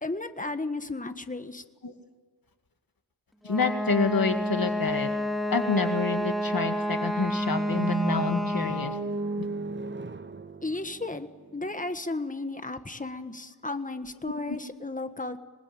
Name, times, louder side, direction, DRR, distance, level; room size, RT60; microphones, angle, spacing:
voice 1, 0.0-1.6 10.6-15.4, left 2 dB, 20° left, 9 dB, 1.5 m, -34 dB
voice 2, 3.4-5.1 5.5-8.9 14.5-14.6, left 4 dB, 60° left, 6 dB, 2.1 m, -28 dB
Wind instrument woodwind instrument, 3.4-9.1, equal, ahead, 3.8 m, -29 dB
sound 1, 7.5-11.6, right 3 dB, 30° right, 0.8 m, -34 dB
26.0 x 20.0 x 8.9 m, 1.4 s
wide cardioid pair, 90°, 39 cm